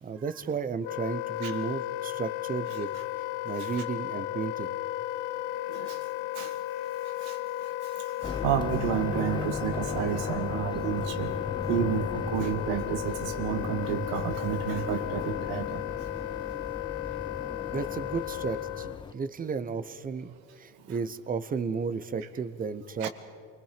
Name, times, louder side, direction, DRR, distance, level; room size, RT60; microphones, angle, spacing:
voice 1, 0.0-2.9 3.4-4.8 17.7-23.1, right 5 dB, 25° right, 14 dB, 0.9 m, -33 dB
Wind instrument woodwind instrument, 0.8-19.0, left 15 dB, 75° left, 0.6 m, -35 dB
sound 1, 8.2-19.1, left 5 dB, 15° left, 0.4 m, -37 dB
voice 2, 8.2-11.3 11.7-15.8 23.0-23.1, right 8 dB, 80° right, 7 dB, 2.2 m, -30 dB
28.5 x 21.0 x 5.1 m, 2.5 s
supercardioid pair, 115°, 34 cm